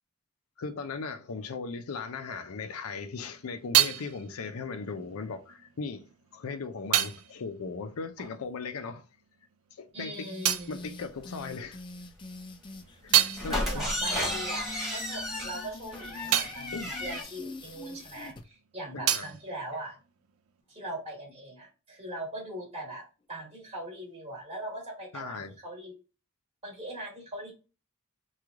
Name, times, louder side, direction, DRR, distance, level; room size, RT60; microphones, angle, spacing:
voice 1, 0.6-9.0 9.7-10.1 10.7-11.8 13.0-13.1 13.4-13.9 16.7-17.0 18.9-19.2 25.1-25.5, left 4 dB, 90° left, 0.5 m, -38 dB
sound 1, 3.0-8.9 9.2-11.9 12.3-18.3 18.6-20.6, right 12 dB, 80° right, 0.4 m, -32 dB
voice 2, 9.9-10.8 13.1-20.0 20.7-23.0 23.3-25.9 26.6-27.5, right 1 dB, 30° right, 1.3 m, -40 dB
sound 2, 10.1-18.4, left 2 dB, 25° left, 0.4 m, -45 dB
sound 3, 13.4-17.2, left 1 dB, ahead, 1.1 m, -33 dB
3.1 x 2.3 x 3.5 m
head